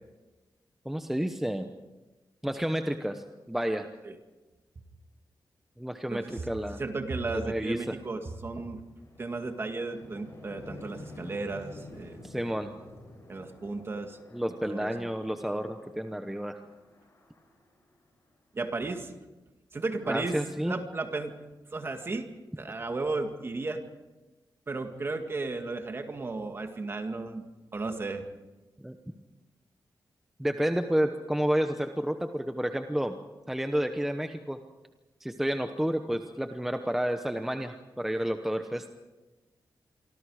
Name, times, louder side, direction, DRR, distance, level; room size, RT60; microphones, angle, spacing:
voice 1, 0.8-1.7 2.4-3.9 5.8-6.8 7.3-7.9 12.2-12.7 14.3-16.6 20.1-20.8 28.8-28.9 30.4-33.2 33.5-34.6 35.2-38.9, equal, 5° right, 6 dB, 0.9 m, -30 dB
voice 2, 6.1-6.4 6.8-8.8 9.2-12.2 13.3-14.2 14.6-15.1 18.5-19.1 19.7-20.4 20.6-21.3 21.7-22.3 22.6-23.8 24.7-27.4 27.7-28.3, right 3 dB, 30° right, 6 dB, 2.0 m, -34 dB
sound 1, 8.2-18.6, left 2 dB, 35° left, 7.5 m, -50 dB
27.5 x 24.5 x 4.9 m, 1.1 s
wide cardioid pair, 170°, 8 cm